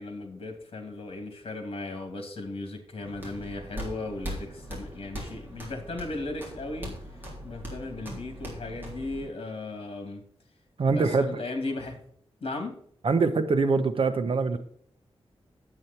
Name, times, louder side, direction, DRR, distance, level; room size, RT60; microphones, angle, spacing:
voice 1, 0.0-7.0 7.4-10.2 10.9-12.0 12.4-12.8, left 2 dB, 65° left, 5 dB, 2.6 m, -36 dB
sound 1, 3.0-9.3, equal, 20° right, 3.7 m, -40 dB
voice 2, 10.8-11.4 13.0-14.6, right 4 dB, 60° right, 9 dB, 1.0 m, -24 dB
9.7 x 8.6 x 4.3 m, 0.63 s
wide cardioid pair, 150°, 10 cm